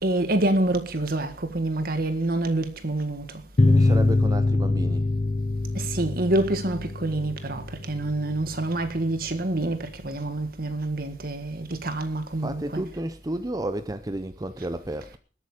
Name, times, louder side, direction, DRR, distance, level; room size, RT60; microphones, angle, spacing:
voice 1, 0.0-1.3 1.5-3.2 6.0-7.6 7.9-9.8 10.0-12.8, right 2 dB, 55° right, 1.7 m, -26 dB
sound 1, 3.6-8.7, left 2 dB, 35° left, 0.6 m, -24 dB
voice 2, 3.6-5.0 12.4-15.2, right 1 dB, 20° right, 0.6 m, -31 dB
20.0 x 8.5 x 4.9 m
head